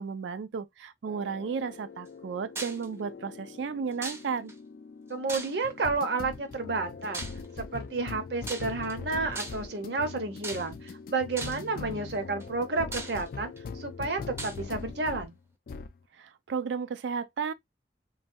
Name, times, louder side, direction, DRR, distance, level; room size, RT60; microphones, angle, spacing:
voice 1, 0.0-4.5 16.2-17.5, right 6 dB, 85° right, 0.4 m, -34 dB
sound 1, 1.1-15.3 15.7-16.0, left 4 dB, 55° left, 0.3 m, -42 dB
sound 2, 2.6-2.9 4.0-4.5 5.3-5.8 7.1-7.5 8.4-8.9 9.3-9.8 10.4-10.9 11.4-11.7 12.4-12.5 12.9-13.6 14.4-14.6, right 2 dB, 15° right, 0.5 m, -38 dB
voice 2, 5.1-7.2 7.6-15.3, right 3 dB, 65° right, 0.8 m, -31 dB
3.1 x 2.2 x 2.6 m
head